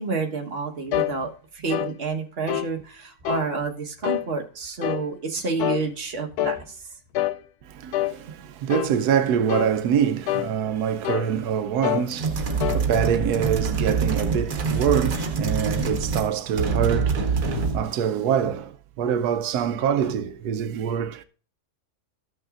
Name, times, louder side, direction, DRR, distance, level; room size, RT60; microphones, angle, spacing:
voice 1, 0.0-6.7, right 4 dB, 40° right, 1.5 m, -29 dB
sound 1, 0.9-1.2 1.7-1.9 2.5-2.7 3.2-3.5 4.0-4.3 4.8-5.1 5.6-5.9 6.4-6.6 7.1-7.4 7.9-8.2 8.7-8.9 9.5-9.8 10.3-10.5 11.0-11.3 11.8-12.1 12.6-12.8, left 13 dB, 85° left, 1.1 m, -26 dB
voice 2, 7.7-21.2, right 8 dB, 90° right, 1.2 m, -25 dB
sound 2, 12.1-16.3 16.6-17.9, right 4 dB, 65° right, 1.6 m, -25 dB
14.5 x 6.3 x 2.4 m
omnidirectional pair, 1.6 m